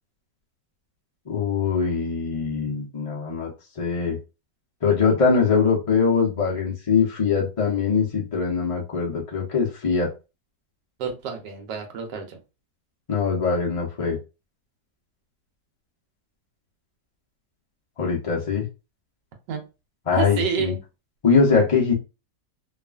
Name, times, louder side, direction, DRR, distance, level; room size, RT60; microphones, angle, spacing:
voice 1, 1.3-3.5 3.8-4.2 4.8-10.1 13.1-14.2 18.0-18.7 20.1-20.7 21.2-21.9, left 5 dB, 60° left, -3 dB, 0.3 m, -22 dB
voice 2, 11.0-12.4 19.5-19.6 20.1-20.8, right 6 dB, 85° right, 3 dB, 1.3 m, -29 dB
2.9 x 2.4 x 2.3 m, 0.28 s
omnidirectional pair, 1.8 m